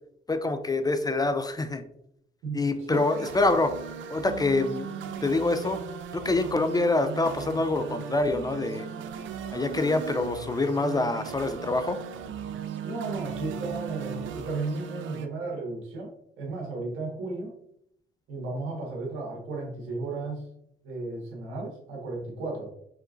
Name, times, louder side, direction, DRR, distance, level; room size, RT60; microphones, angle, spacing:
voice 1, 0.3-1.8 2.5-3.7 4.1-4.9 5.2-5.8 6.1-8.9 9.5-12.0, left 2 dB, 20° left, 9 dB, 0.4 m, -26 dB
voice 2, 2.4-3.1 12.8-16.1 16.4-17.6 18.3-20.5 20.8-22.7, right 3 dB, 90° right, -2 dB, 1.7 m, -34 dB
sound 1, 2.9-15.3, right 8 dB, 75° right, 0.5 m, -37 dB
5.6 x 3.6 x 2.6 m, 0.74 s
cardioid pair, 90°, 20 cm